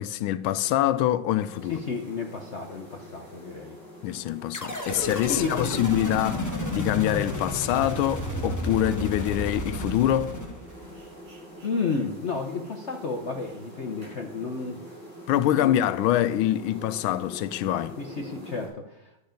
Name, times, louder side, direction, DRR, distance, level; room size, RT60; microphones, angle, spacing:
voice 1, 0.0-1.8 4.0-6.4 6.7-10.4 15.3-18.0, left 12 dB, 85° left, 1.4 m, -25 dB
sound 1, 1.4-18.7, equal, 70° right, 5.8 m, -45 dB
voice 2, 1.7-3.8 5.3-5.9 11.6-14.8 15.6-15.8 18.0-19.1, left 4 dB, 60° left, 0.7 m, -32 dB
sound 2, 4.5-11.0, equal, 15° left, 0.7 m, -32 dB
12.0 x 8.0 x 5.1 m
omnidirectional pair, 2.2 m